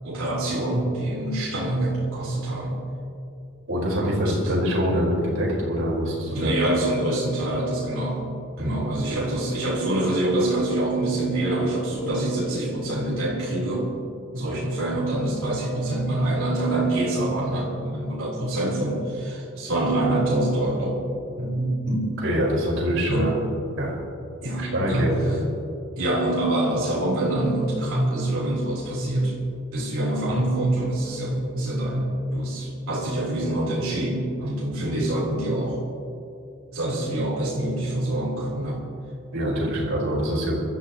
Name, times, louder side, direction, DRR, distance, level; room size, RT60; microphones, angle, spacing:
voice 1, 0.0-2.8 4.0-4.6 6.3-8.2 8.6-13.9 14.3-21.0 21.4-22.1 23.1-23.3 24.4-25.1 26.0-29.3 29.7-35.8 36.7-38.8, right 1 dB, 85° right, -6 dB, 3.6 m, -25 dB
voice 2, 3.7-6.6 8.6-8.8 22.2-23.3 23.8-23.9 24.6-25.4 39.3-40.5, equal, 65° right, -4 dB, 4.3 m, -24 dB
25.5 x 13.5 x 3.0 m, 2.6 s
head